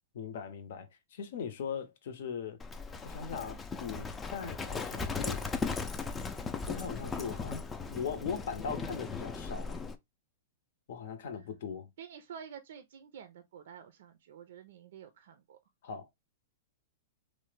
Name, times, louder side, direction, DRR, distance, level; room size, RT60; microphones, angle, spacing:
voice 1, 0.1-2.6 3.0-5.4 6.7-7.6 7.9-9.8 10.9-11.9 15.8-16.1, left 6 dB, 65° left, 0.7 m, -39 dB
Livestock farm animals working animals, 2.6-10.0, left 4 dB, 15° left, 0.4 m, -37 dB
voice 2, 12.0-15.6, right 8 dB, 70° right, 0.4 m, -49 dB
3.2 x 2.1 x 3.1 m
hypercardioid pair, 125°, 0 cm